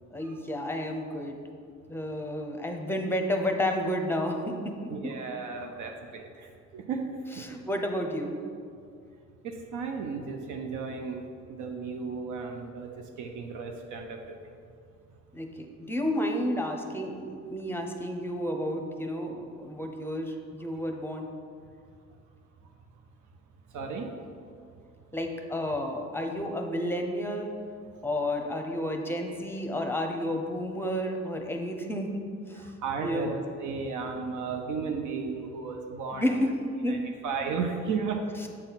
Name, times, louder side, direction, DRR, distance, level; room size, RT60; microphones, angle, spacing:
voice 1, 0.1-1.4 1.9-5.1 7.3-8.4 15.3-21.3 25.1-27.5 28.0-32.2 32.5-32.7 33.0-33.4 36.1-36.6 36.8-37.0 38.4-38.5, left 1 dB, 5° left, 3 dB, 0.7 m, -31 dB
voice 2, 4.9-7.1 9.4-11.2 11.5-12.9 13.2-14.2 23.7-24.1 32.6-36.3 36.9-38.2, right 5 dB, 75° right, 3 dB, 0.6 m, -34 dB
7.7 x 4.1 x 4.0 m, 2.3 s
cardioid pair, 90°, 30 cm